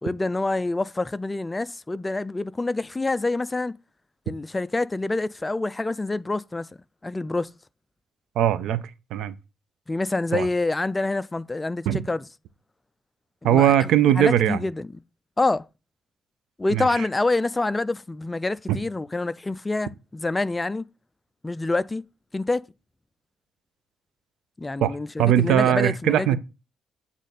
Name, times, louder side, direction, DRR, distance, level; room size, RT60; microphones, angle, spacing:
voice 1, 0.0-3.7 4.3-6.7 7.0-7.5 9.9-12.2 13.4-13.9 14.2-14.9 15.4-15.7 16.6-20.8 21.4-22.0 22.3-22.6 24.6-26.4, left 2 dB, 20° left, 0.3 m, -26 dB
voice 2, 8.4-8.8 9.1-9.3 10.3-10.5 11.9-12.0 13.4-14.6 16.7-17.1 18.7-18.8 24.8-26.4, right 10 dB, 85° right, 0.6 m, -20 dB
8.2 x 3.7 x 4.1 m
cardioid pair, 90°, 0 cm